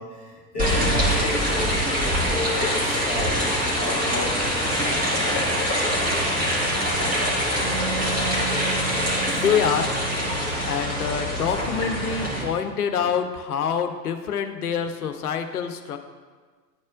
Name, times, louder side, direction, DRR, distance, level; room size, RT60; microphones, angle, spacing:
voice 1, 0.0-1.8 2.2-3.5 3.8-4.5 8.8-9.5 13.0-13.1, left 1 dB, 10° left, -11 dB, 0.3 m, -32 dB
sound 1, 0.6-12.4, equal, 15° right, 1.6 m, -24 dB
Wind instrument woodwind instrument, 7.6-13.0, right 5 dB, 60° right, 1.1 m, -36 dB
voice 2, 9.3-10.0 10.6-16.0, left 7 dB, 60° left, 7 dB, 0.8 m, -26 dB
11.0 x 4.2 x 2.5 m, 1.5 s
figure-of-eight pair, 100°, 50 cm